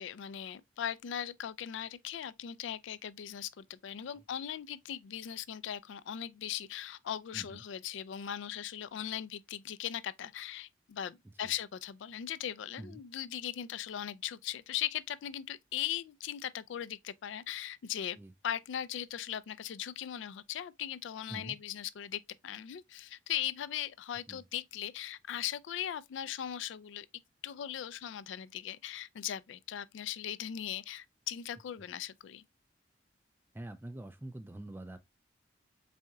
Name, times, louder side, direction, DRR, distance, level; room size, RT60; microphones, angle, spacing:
voice 1, 0.0-18.2 18.4-27.1 27.4-32.4, left 10 dB, 75° left, 0.3 m, -39 dB
voice 2, 33.5-35.0, right 1 dB, 10° right, 0.3 m, -45 dB
4.1 x 3.7 x 2.2 m
head